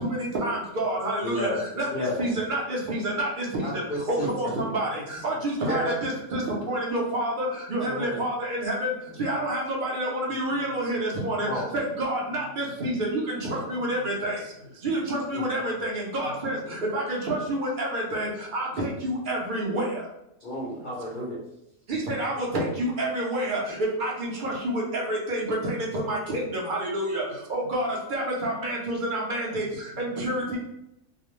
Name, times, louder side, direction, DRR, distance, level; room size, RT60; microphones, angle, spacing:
voice 1, 0.0-1.5 1.8-1.9 2.2-2.6 2.9-3.3 4.4-4.9 5.2-8.3 8.6-8.9 9.2-11.5 11.7-13.2 13.5-14.3 14.8-16.6 16.9-19.8 21.9-22.5 22.8-23.6 24.0-25.7 26.1-26.2 26.7-27.2 27.5-29.6 30.2-30.6, right 1 dB, 55° right, -3 dB, 0.5 m, -28 dB
voice 2, 1.2-1.6 1.9-2.2 3.6-4.6 5.7-6.0 7.8-8.2 11.5-11.6 15.3-15.5 20.4-21.4, left 1 dB, 80° left, -5 dB, 0.4 m, -31 dB
voice 3, 4.5-5.8 7.9-8.3 9.1-9.4 10.5-10.8 12.2-12.9 13.5-14.9 16.2-16.7 18.7-18.9 20.7-21.3 27.6-27.7 29.5-30.3, left 1 dB, 90° right, 2 dB, 1.1 m, -48 dB
2.4 x 2.0 x 3.0 m, 0.82 s
omnidirectional pair, 1.5 m